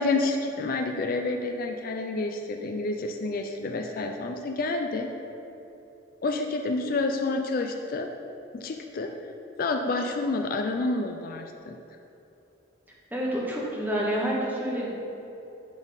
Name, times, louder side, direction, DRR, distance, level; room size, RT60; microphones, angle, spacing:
voice 1, 0.0-5.1 6.2-8.1 8.5-9.1 9.6-11.8, left 3 dB, 50° left, 4 dB, 0.4 m, -29 dB
voice 2, 13.1-14.9, equal, 10° right, -4 dB, 1.1 m, -28 dB
10.5 x 4.2 x 3.9 m, 2.9 s
head